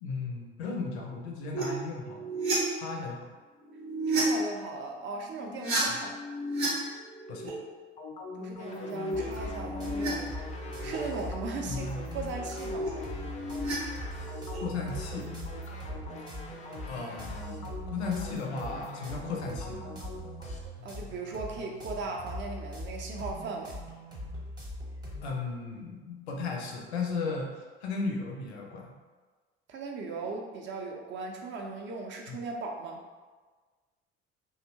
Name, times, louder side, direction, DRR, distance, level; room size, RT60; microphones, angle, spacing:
voice 1, 0.0-2.3 2.7-3.2 5.9-6.0 7.3-7.5 11.7-12.0 14.5-15.3 16.9-19.9 25.2-27.5 27.8-28.9 32.3-32.4, left 4 dB, 75° left, 1 dB, 0.5 m, -35 dB
sound 1, 1.5-1.6 2.0-2.6 3.6-4.2 5.4-6.7 7.0-7.5 8.6-10.1 10.4-11.0 12.3-13.7 14.1-14.6, right 2 dB, 80° right, 0.7 m, -33 dB
voice 2, 4.1-6.1 8.3-10.3 10.8-12.9 20.8-23.8 29.7-33.0, right 3 dB, 35° right, 1 dB, 0.5 m, -38 dB
sound 2, 8.0-20.6, left 4 dB, 20° left, 0.3 m, -44 dB
sound 3, 9.1-25.4, equal, 10° right, 0.8 m, -41 dB
2.7 x 2.0 x 2.7 m, 1.4 s
figure-of-eight pair, 55°, 33 cm